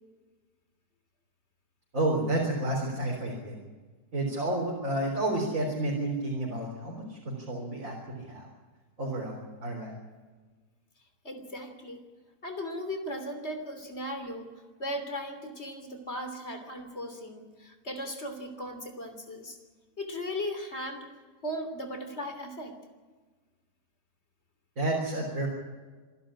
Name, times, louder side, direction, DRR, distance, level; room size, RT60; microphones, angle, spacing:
voice 1, 1.9-3.6 4.1-8.5 9.0-9.9 24.8-25.5, right 1 dB, 55° right, -2 dB, 4.2 m, -30 dB
voice 2, 11.2-12.0 12.4-14.5 14.8-19.6 20.0-21.1 21.4-22.7, equal, 40° left, 7 dB, 3.3 m, -37 dB
26.5 x 11.5 x 9.9 m, 1.4 s
omnidirectional pair, 1.7 m